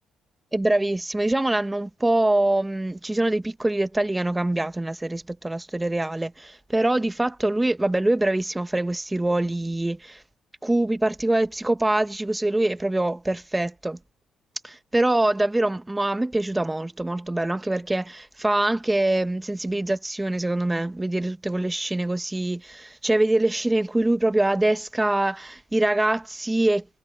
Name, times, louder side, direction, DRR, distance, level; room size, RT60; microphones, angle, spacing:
voice 1, 0.5-10.2 10.6-14.0 14.6-26.9, right 1 dB, 10° right, 0.8 m, -24 dB
cardioid pair, 90°, 0 cm